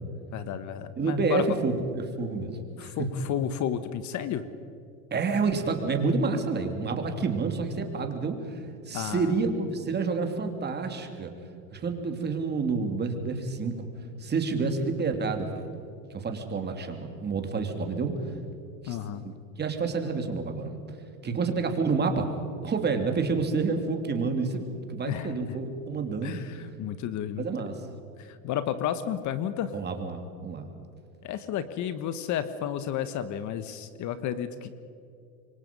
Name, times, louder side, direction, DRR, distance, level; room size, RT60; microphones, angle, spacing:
voice 1, 0.3-1.4 2.8-4.5 8.9-9.5 18.9-19.2 25.1-25.4 26.2-27.5 28.2-29.7 31.2-34.7, left 10 dB, 45° left, 12 dB, 1.3 m, -32 dB
voice 2, 1.0-2.9 5.1-11.3 11.7-13.9 14.2-15.7 16.1-18.1 18.8-19.0 19.2-20.7 21.2-22.3 22.6-24.6 24.9-26.4 27.4-27.7 29.7-30.7, right 4 dB, 25° right, 5 dB, 3.1 m, -29 dB
27.5 x 24.0 x 5.5 m, 2.5 s
supercardioid pair, 115°, 40 cm